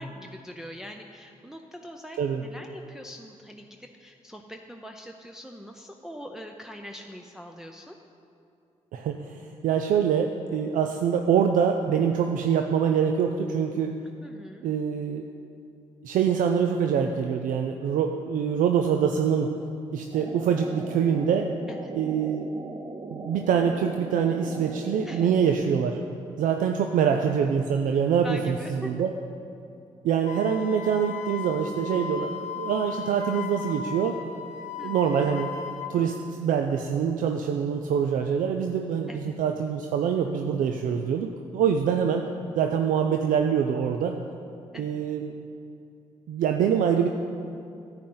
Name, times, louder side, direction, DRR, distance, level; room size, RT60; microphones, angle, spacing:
voice 1, 0.0-8.0 14.2-14.7 21.7-21.9 25.0-25.3 28.2-28.9 34.8-35.0 39.1-39.4 44.7-44.9, equal, 5° right, 2 dB, 0.6 m, -42 dB
voice 2, 8.9-13.9 14.6-15.2 16.0-19.5 19.9-21.5 21.9-22.5 23.1-26.0 26.4-29.1 30.0-34.2 34.8-35.5 35.9-42.3 42.6-44.2 44.8-45.3 46.3-47.1, right 7 dB, 75° right, 4 dB, 0.5 m, -25 dB
sound 1, 20.1-25.5, right 3 dB, 35° right, 0.8 m, -39 dB
Wind instrument woodwind instrument, 30.3-35.9, left 6 dB, 60° left, 0.8 m, -36 dB
10.0 x 8.9 x 3.9 m, 2.6 s
supercardioid pair, 55°, 14 cm